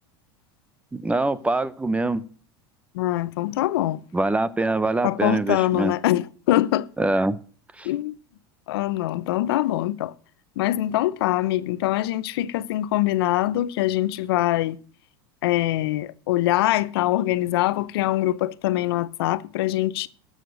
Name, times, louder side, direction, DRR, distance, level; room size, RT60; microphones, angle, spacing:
voice 1, 0.9-2.2 4.1-5.9 7.0-7.4 7.8-7.9, right 2 dB, 10° right, 0.8 m, -24 dB
voice 2, 2.9-4.0 5.0-6.9 7.8-8.2 8.7-10.1 10.6-14.8 15.4-20.1, left 15 dB, 75° left, 0.7 m, -23 dB
13.5 x 6.6 x 6.4 m
hypercardioid pair, 100°, 13 cm